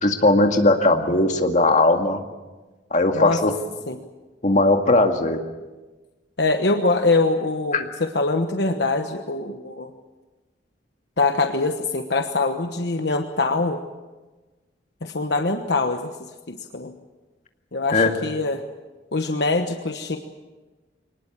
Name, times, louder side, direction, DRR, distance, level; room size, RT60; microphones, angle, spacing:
voice 1, 0.0-2.2 2.9-3.5 4.4-5.4 7.7-7.8 17.9-18.1, left 2 dB, 45° left, 4 dB, 2.1 m, -18 dB
voice 2, 6.4-9.9 11.2-13.8 15.0-16.1 16.5-16.9 17.7-18.6 19.1-20.2, left 3 dB, 65° left, 6 dB, 1.2 m, -23 dB
24.0 x 19.5 x 7.4 m, 1.2 s
head